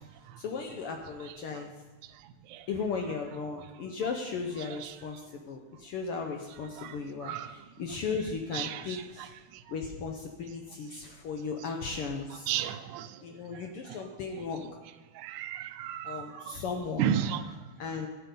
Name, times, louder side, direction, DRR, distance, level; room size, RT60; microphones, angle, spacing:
voice 1, 0.4-1.7 2.7-9.3 9.7-12.6 13.2-14.7 16.0-18.1, left 5 dB, 70° left, 1.4 m, -36 dB
voice 2, 8.5-9.0 12.5-13.1 15.2-16.2 17.0-17.4, right 10 dB, 85° right, 2.0 m, -31 dB
13.0 x 7.7 x 5.4 m
omnidirectional pair, 3.4 m